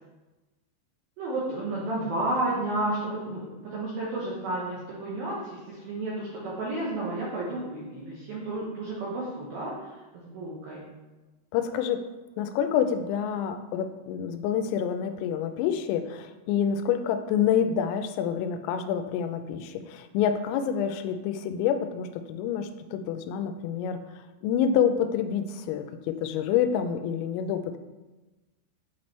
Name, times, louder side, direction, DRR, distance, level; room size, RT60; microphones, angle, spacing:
voice 1, 1.2-10.9, right 2 dB, 80° right, -5 dB, 2.1 m, -32 dB
voice 2, 11.5-12.0 12.4-27.8, left 8 dB, 85° left, 8 dB, 3.1 m, -27 dB
8.7 x 3.1 x 4.4 m, 1.1 s
omnidirectional pair, 5.7 m